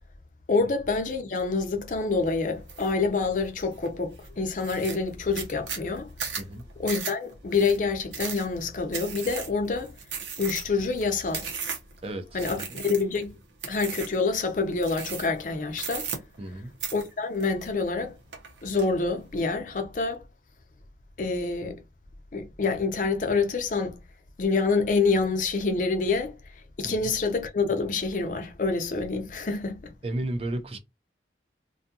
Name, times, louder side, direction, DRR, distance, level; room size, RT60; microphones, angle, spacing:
voice 1, 0.5-6.1 6.8-9.9 10.4-11.5 12.3-13.4 13.7-16.1 16.9-18.1 18.6-20.2 21.2-21.8 22.3-24.0 24.4-26.3 26.8-29.9, left 4 dB, 45° left, 0.5 m, -27 dB
sound 1, 2.7-2.9 3.4-3.9 4.2-4.3 4.6-12.0 12.4-13.2 13.6-14.2 14.8-15.4 15.7-16.5 16.8-18.0 18.3-18.9, right 6 dB, 85° right, 0.8 m, -36 dB
voice 2, 12.0-12.8 16.4-16.7 26.8-26.9 30.0-30.8, right 1 dB, 35° right, 0.4 m, -33 dB
2.6 x 2.3 x 2.7 m
head